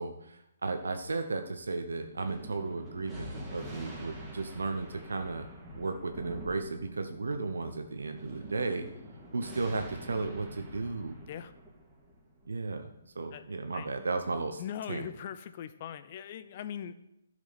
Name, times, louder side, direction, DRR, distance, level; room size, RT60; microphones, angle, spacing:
voice 1, 0.0-5.5 5.8-8.9 9.3-11.2 12.5-12.9 13.1-14.6 14.9-15.1, right 3 dB, 75° right, 6 dB, 0.9 m, -34 dB
Thunder, 2.1-13.0, equal, 10° right, 2.4 m, -46 dB
voice 2, 13.3-13.9 14.6-16.9, left 9 dB, 40° left, 12 dB, 0.6 m, -41 dB
12.0 x 6.4 x 4.2 m, 0.82 s
figure-of-eight pair, 135°, 0 cm